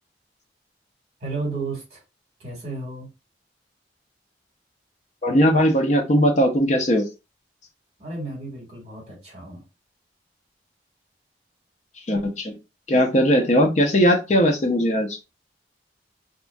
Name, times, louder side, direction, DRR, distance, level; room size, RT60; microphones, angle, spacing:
voice 1, 1.2-2.0 2.4-3.1 8.0-9.6, right 3 dB, 35° right, 1.5 m, -33 dB
voice 2, 5.2-7.0 12.1-12.6 12.9-15.2, equal, 40° left, 0.6 m, -19 dB
2.8 x 2.5 x 2.2 m
head